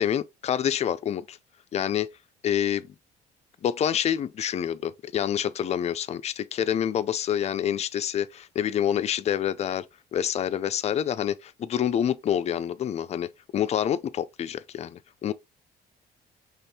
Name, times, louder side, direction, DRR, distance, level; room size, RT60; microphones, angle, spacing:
voice 1, 0.0-1.4 1.7-2.1 2.4-2.9 3.6-9.9 10.1-15.3, left 9 dB, 40° left, 0.4 m, -27 dB
5.3 x 3.6 x 2.8 m
cardioid pair, 110°, 17 cm